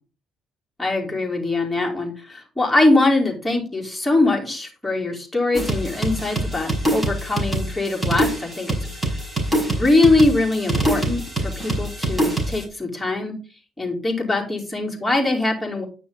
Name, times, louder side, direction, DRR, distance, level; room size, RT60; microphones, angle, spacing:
voice 1, 0.8-8.9 9.6-13.4 13.8-15.8, left 2 dB, 5° left, -2 dB, 4.4 m, -22 dB
sound 1, 5.5-12.6, right 1 dB, 20° right, 5.3 m, -25 dB
10.0 x 6.1 x 5.5 m, 0.37 s
supercardioid pair, 70°, 0 cm